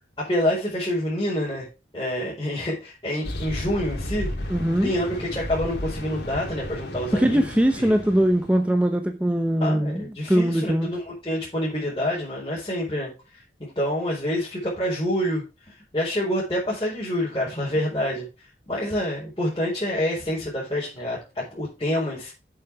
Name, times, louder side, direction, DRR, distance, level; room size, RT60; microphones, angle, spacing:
voice 1, 0.2-1.7 1.9-4.5 4.8-7.5 7.7-7.9 9.6-15.4 15.9-18.3 18.7-22.3, left 1 dB, 25° left, 4.8 m, -27 dB
sound 1, 3.2-8.6, left 1 dB, 80° left, 3.3 m, -33 dB
voice 2, 4.5-4.9 7.1-10.9, equal, 5° right, 0.8 m, -21 dB
8.5 x 7.4 x 4.8 m
head